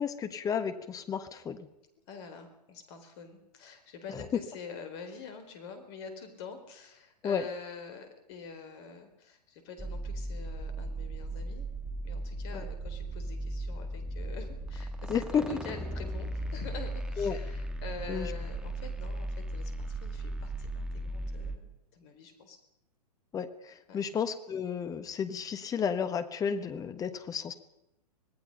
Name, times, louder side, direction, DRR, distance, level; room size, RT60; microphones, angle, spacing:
voice 1, 0.0-1.7 7.2-7.4 15.1-15.5 17.2-17.4 18.1-18.3 23.3-27.5, left 7 dB, 15° left, 10 dB, 1.4 m, -32 dB
voice 2, 2.1-11.7 12.0-22.6 23.9-24.0, left 5 dB, 40° left, 7 dB, 4.4 m, -46 dB
sound 1, 9.8-21.6, right 1 dB, 5° right, 2.0 m, -37 dB
26.0 x 18.5 x 5.6 m, 0.83 s
figure-of-eight pair, 110°, 21 cm